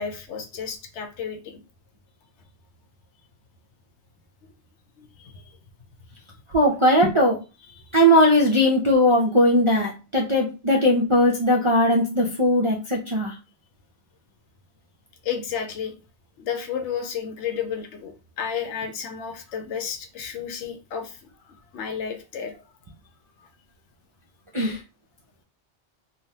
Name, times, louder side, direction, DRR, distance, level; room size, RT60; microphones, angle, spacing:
voice 1, 0.0-1.5 5.0-5.6 7.7-7.8 15.2-15.9 16.4-21.2 21.5-22.6, left 7 dB, 90° left, 5 dB, 0.9 m, -32 dB
voice 2, 6.5-7.4 7.9-13.4 24.5-24.8, equal, 50° right, -1 dB, 0.3 m, -19 dB
3.3 x 2.3 x 2.6 m, 0.31 s
omnidirectional pair, 1.2 m